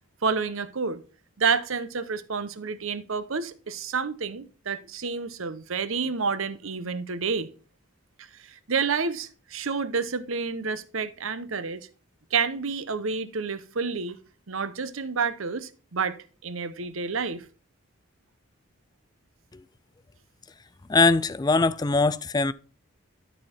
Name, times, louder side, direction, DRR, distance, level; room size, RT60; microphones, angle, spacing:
voice 1, 0.2-1.0 1.4-7.5 8.2-11.9 12.3-14.2 14.5-16.2 16.4-17.4, right 5 dB, 85° right, 0.9 m, -29 dB
voice 2, 20.9-22.5, left 3 dB, 20° left, 0.3 m, -21 dB
12.5 x 4.3 x 4.4 m
head